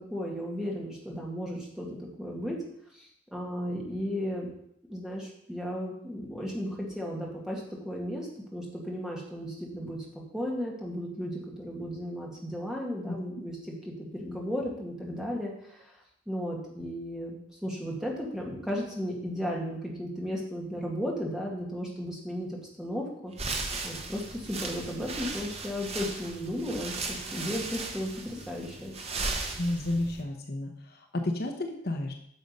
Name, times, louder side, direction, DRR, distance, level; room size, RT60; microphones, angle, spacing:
voice 1, 0.0-2.6 2.9-4.5 4.9-10.0 10.3-16.0 16.3-23.3 23.8-28.9, equal, 5° right, -3 dB, 1.9 m, -35 dB
sound 1, 23.3-30.2, right 3 dB, 30° right, 1.0 m, -36 dB
voice 2, 29.6-32.1, left 1 dB, 45° left, 5 dB, 0.8 m, -32 dB
9.3 x 6.2 x 5.4 m, 0.74 s
head